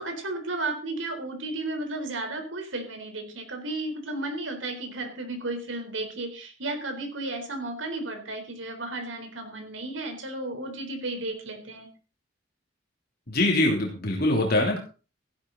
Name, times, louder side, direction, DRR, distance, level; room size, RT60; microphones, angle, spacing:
voice 1, 0.0-11.9, right 2 dB, 85° right, 5 dB, 4.0 m, -33 dB
voice 2, 13.3-14.8, left 1 dB, 50° left, 0 dB, 3.3 m, -23 dB
16.0 x 11.5 x 4.0 m, 0.35 s
head